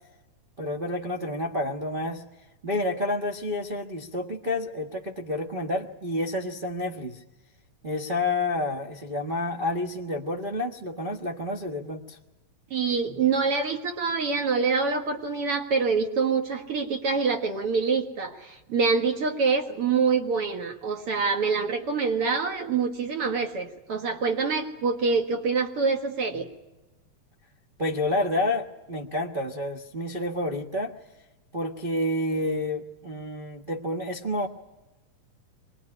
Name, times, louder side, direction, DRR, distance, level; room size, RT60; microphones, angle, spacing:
voice 1, 0.6-2.2 2.6-7.2 7.8-12.2 27.8-30.9 31.5-34.5, left 1 dB, 70° right, -1 dB, 0.4 m, -29 dB
voice 2, 12.7-26.5, right 5 dB, 50° right, 5 dB, 2.6 m, -26 dB
24.5 x 20.0 x 9.8 m, 1.1 s
omnidirectional pair, 3.5 m